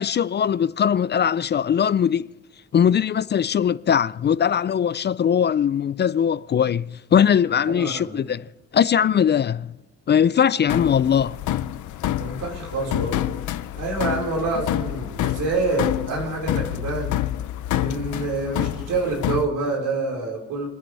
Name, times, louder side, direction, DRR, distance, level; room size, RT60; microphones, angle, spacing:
voice 1, 0.0-2.3 2.7-8.4 8.7-9.7 10.1-11.4, left 8 dB, 35° left, 0.4 m, -20 dB
voice 2, 7.7-8.3 12.1-13.4 13.7-17.2 17.8-20.7, right 3 dB, 85° right, 4.9 m, -27 dB
sound 1, 10.7-19.5, left 12 dB, 75° left, 0.7 m, -27 dB
29.5 x 10.5 x 3.4 m
cardioid pair, 90°, 30 cm